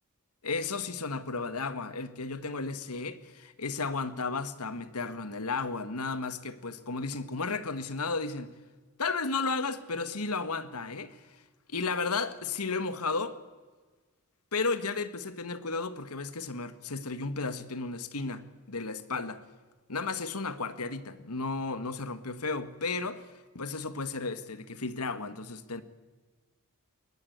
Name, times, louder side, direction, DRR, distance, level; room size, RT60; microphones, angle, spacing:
voice 1, 0.4-8.5 9.0-11.2 11.7-13.3 14.5-19.4 19.9-23.2 23.5-25.8, left 4 dB, 90° left, 1.7 m, -33 dB
22.0 x 20.0 x 9.5 m
head